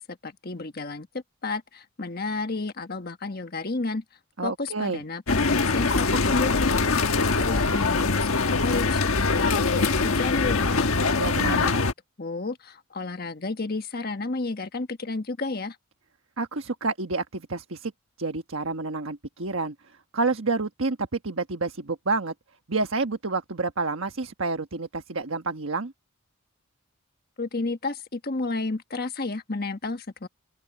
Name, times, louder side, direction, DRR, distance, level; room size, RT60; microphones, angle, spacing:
voice 1, 0.0-4.0 4.4-11.9 12.2-15.8 27.4-30.3, left 3 dB, 45° left, 1.4 m, -32 dB
voice 2, 4.4-5.0 11.2-11.7 16.4-17.9 18.2-19.7 20.1-22.3 22.7-25.9, right 3 dB, 65° right, 1.3 m, -29 dB
sound 1, 5.3-11.9, left 3 dB, 75° left, 1.3 m, -23 dB
open air
head